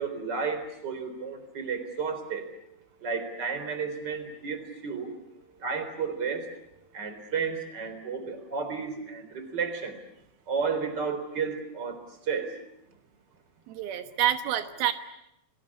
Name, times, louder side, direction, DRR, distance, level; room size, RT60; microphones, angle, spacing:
voice 1, 0.0-2.4 3.0-5.1 5.6-6.4 6.9-9.9 10.5-12.0 12.3-12.6, right 5 dB, 30° right, 9 dB, 4.2 m, -32 dB
voice 2, 13.7-14.9, right 11 dB, 85° right, 9 dB, 3.2 m, -27 dB
30.0 x 20.5 x 9.7 m, 0.82 s
omnidirectional pair, 4.2 m